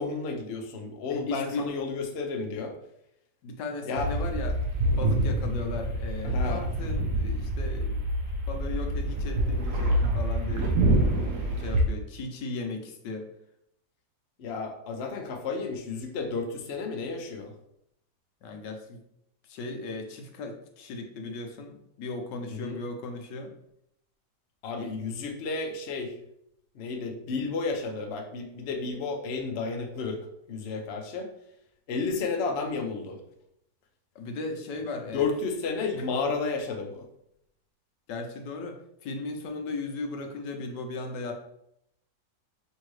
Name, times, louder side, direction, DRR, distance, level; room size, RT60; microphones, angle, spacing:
voice 1, 0.0-2.7 3.8-4.1 6.2-6.7 14.4-17.5 22.5-22.8 24.6-26.2 26.7-30.2 30.5-31.3 31.9-33.2 35.1-37.1, left 4 dB, 60° left, 3 dB, 0.7 m, -32 dB
voice 2, 1.1-1.7 3.4-4.5 5.0-8.0 8.5-11.3 11.6-13.3 18.4-19.0 19.4-23.5 24.8-24.9 34.1-35.3 38.1-41.3, left 3 dB, 85° left, 4 dB, 1.3 m, -36 dB
sound 1, 4.0-11.8, right 1 dB, 60° right, 1.0 m, -26 dB
5.6 x 2.7 x 3.1 m, 0.76 s
omnidirectional pair, 1.8 m